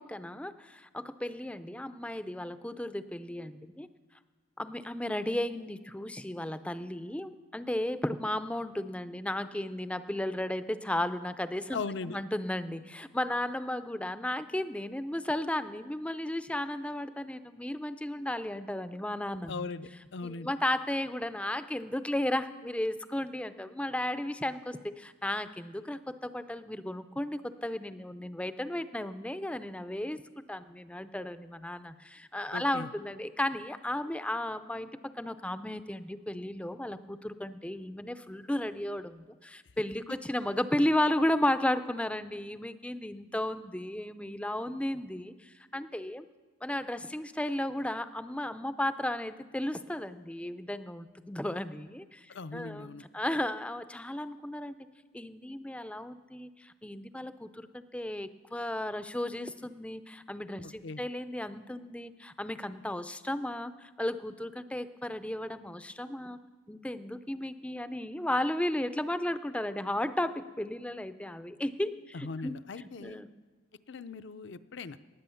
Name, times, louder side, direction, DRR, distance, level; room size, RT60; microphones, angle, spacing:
voice 1, 0.0-3.9 4.6-11.8 12.1-19.7 20.2-30.2 30.5-46.3 46.6-54.8 55.1-66.4 66.7-72.5 72.8-73.3, left 1 dB, 5° left, 11 dB, 0.4 m, -34 dB
voice 2, 11.7-12.2 19.5-20.5 32.5-32.9 52.3-53.0 60.6-61.0 72.1-73.2 73.9-75.0, left 4 dB, 55° left, 13 dB, 0.5 m, -39 dB
18.5 x 9.2 x 7.0 m, 1.3 s
head